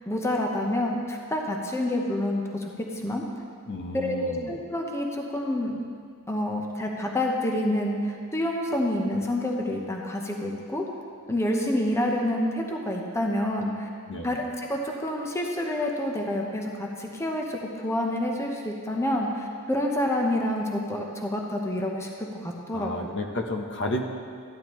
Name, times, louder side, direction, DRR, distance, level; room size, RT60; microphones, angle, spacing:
voice 1, 0.1-2.6 3.0-3.2 3.9-5.8 6.3-10.8 11.3-13.9 14.2-23.1, left 1 dB, 15° left, 0 dB, 0.8 m, -28 dB
voice 2, 3.7-4.5 14.1-14.4 22.7-24.1, left 1 dB, 55° left, 3 dB, 0.8 m, -32 dB
14.0 x 10.5 x 3.1 m, 2.2 s
head